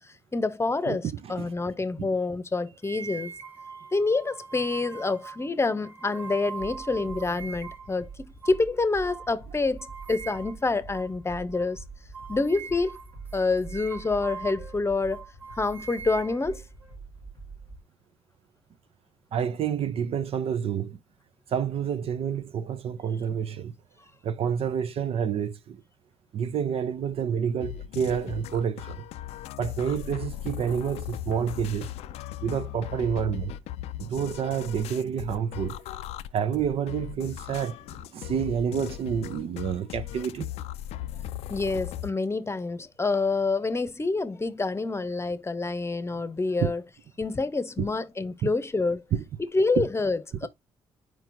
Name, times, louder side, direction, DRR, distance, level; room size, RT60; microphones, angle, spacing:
voice 1, 0.3-3.3 3.9-11.8 12.3-13.0 13.3-15.2 15.6-16.6 41.5-46.8 47.2-49.0 49.4-50.5, left 3 dB, 25° left, 0.8 m, -27 dB
voice 2, 0.9-1.5 2.0-2.1 19.3-21.0 21.5-23.7 24.2-25.8 26.3-29.0 29.6-31.9 32.4-33.6 34.0-35.8 36.3-40.5 46.1-46.2 46.6-46.7 47.8-47.9 48.4-48.5 49.1-49.2 49.8-49.9 50.4-50.5, right 8 dB, 65° right, 0.6 m, -29 dB
sound 1, 2.8-7.9 8.4-8.6 9.1-9.3 9.8-10.7 10.9-11.1 11.5-11.7 12.1-14.8 15.1-16.9, right 5 dB, 15° right, 1.2 m, -42 dB
sound 2, 6.6-17.8, right 4 dB, 90° right, 2.0 m, -45 dB
sound 3, 27.6-42.1, left 12 dB, 80° left, 0.4 m, -38 dB
4.5 x 4.4 x 2.6 m
supercardioid pair, 55°, 11 cm